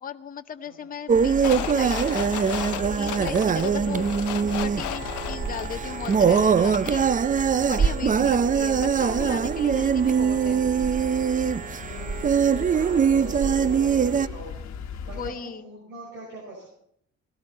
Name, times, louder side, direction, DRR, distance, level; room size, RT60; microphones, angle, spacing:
voice 1, 0.0-2.5 3.0-4.1 4.4-7.1 7.6-10.6 15.1-15.6, left 7 dB, 30° left, 8 dB, 0.7 m, -37 dB
sound 1, 1.1-15.3, left 6 dB, 60° left, 1.3 m, -37 dB
sound 2, 1.1-14.3, right 7 dB, 25° right, 0.4 m, -22 dB
sound 3, 1.4-7.1 7.4-7.5, left 15 dB, 80° left, 0.5 m, -35 dB
voice 2, 11.8-14.5 15.1-16.7, right 2 dB, 85° right, -3 dB, 5.6 m, -42 dB
18.0 x 12.5 x 4.3 m, 0.71 s
cardioid pair, 90°, 30 cm